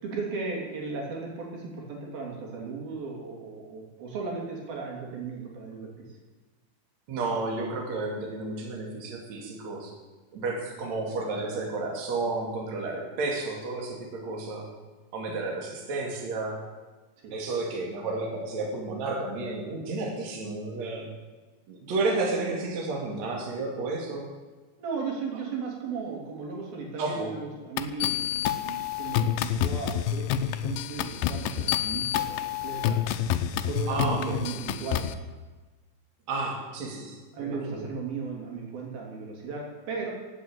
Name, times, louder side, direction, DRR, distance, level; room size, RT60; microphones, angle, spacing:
voice 1, 0.0-6.1 17.2-17.4 24.8-33.0 33.7-35.0 37.3-40.1, right 4 dB, 85° right, -1 dB, 5.1 m, -36 dB
voice 2, 7.1-9.9 10.3-14.7 15.1-16.6 17.3-21.1 21.7-24.3 27.0-27.4 31.6-31.7 33.9-34.4 36.3-37.8, right 3 dB, 50° right, 0 dB, 3.5 m, -31 dB
sound 1, 27.8-35.1, left 10 dB, 80° left, 2.4 m, -28 dB
17.0 x 8.4 x 9.0 m, 1.3 s
omnidirectional pair, 4.1 m